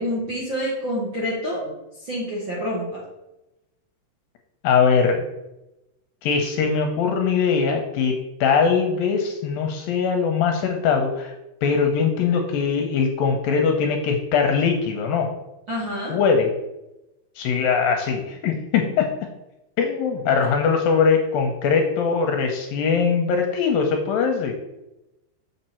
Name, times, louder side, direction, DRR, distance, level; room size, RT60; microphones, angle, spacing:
voice 1, 0.0-1.7 2.0-3.0 15.7-16.1, equal, 45° right, -6 dB, 1.5 m, -27 dB
voice 2, 4.6-5.2 6.2-11.3 11.6-15.3 16.1-16.5 17.4-19.1 19.8-24.5, left 5 dB, 75° left, 3 dB, 2.3 m, -21 dB
6.9 x 6.6 x 4.4 m, 0.94 s
omnidirectional pair, 4.6 m